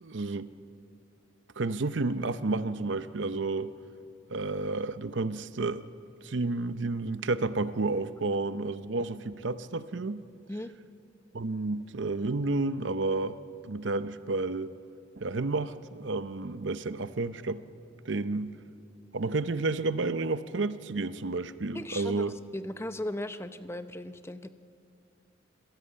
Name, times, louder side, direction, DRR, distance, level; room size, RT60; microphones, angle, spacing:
voice 1, 0.0-0.5 1.6-3.7 4.3-5.8 6.2-10.2 11.3-13.4 13.6-14.7 15.2-17.6 18.0-18.5 19.1-22.4, right 3 dB, 70° right, 0.7 m, -31 dB
voice 2, 21.7-24.5, left 1 dB, 15° left, 0.7 m, -37 dB
26.0 x 16.5 x 8.8 m
head